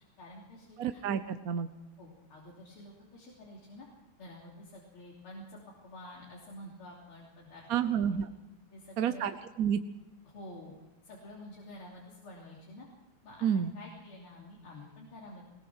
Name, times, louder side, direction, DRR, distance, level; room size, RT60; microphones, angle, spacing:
voice 1, 0.2-1.0 2.0-3.9 4.2-8.0 8.7-9.3 10.3-10.8 11.0-12.9 13.2-13.5 13.7-15.5, left 1 dB, 90° left, -4 dB, 4.0 m, -49 dB
voice 2, 0.8-1.7 7.7-8.3 9.0-9.8 13.4-13.7, right 8 dB, 60° right, 9 dB, 1.0 m, -30 dB
21.0 x 20.0 x 6.3 m, 0.99 s
omnidirectional pair, 2.3 m